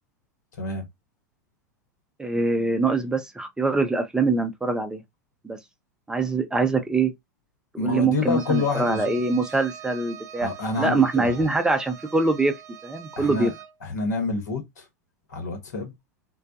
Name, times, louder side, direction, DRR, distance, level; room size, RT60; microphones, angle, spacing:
voice 1, 2.2-5.0 5.4-5.6 6.1-7.1 7.7-10.5 10.8-12.5 12.8-13.5, right 3 dB, 10° right, 0.5 m, -23 dB
voice 2, 7.8-9.3 10.4-11.5 13.2-13.5 13.8-14.9 15.3-15.9, left 3 dB, 70° left, 1.1 m, -28 dB
Bowed string instrument, 8.2-13.8, right 10 dB, 70° right, 0.5 m, -43 dB
2.3 x 2.1 x 2.6 m
figure-of-eight pair, 85°, 10 cm